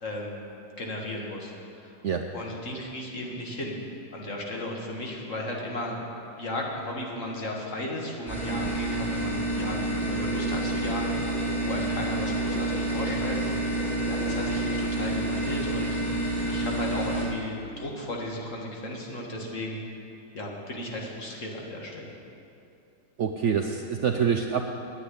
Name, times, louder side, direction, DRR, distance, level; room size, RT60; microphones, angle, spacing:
voice 1, 0.0-0.4 0.8-1.5 1.8-2.0 2.3-3.8 4.1-6.0 6.4-19.8 20.3-22.1, left 1 dB, 45° left, -1 dB, 2.0 m, -35 dB
sound 1, 8.3-17.2, right 2 dB, ahead, 3.8 m, -28 dB
voice 2, 23.2-24.6, right 7 dB, 75° right, 4 dB, 0.6 m, -26 dB
9.9 x 8.6 x 9.9 m, 2.7 s
omnidirectional pair, 1.9 m